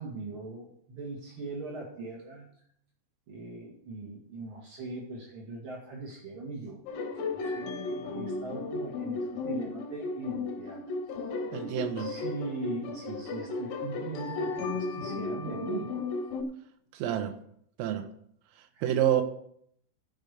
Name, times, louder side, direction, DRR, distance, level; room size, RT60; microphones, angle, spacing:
voice 1, 0.0-2.5 3.3-6.8 7.1-10.8 12.0-15.9 18.7-18.9, right 3 dB, 70° right, -2 dB, 1.2 m, -40 dB
sound 1, 6.9-16.4, left 3 dB, 90° left, 4.0 m, -35 dB
voice 2, 11.5-12.1 16.9-17.3 17.8-18.1 18.8-19.2, right 10 dB, 90° right, 7 dB, 3.7 m, -28 dB
13.5 x 5.3 x 6.6 m, 0.68 s
omnidirectional pair, 5.7 m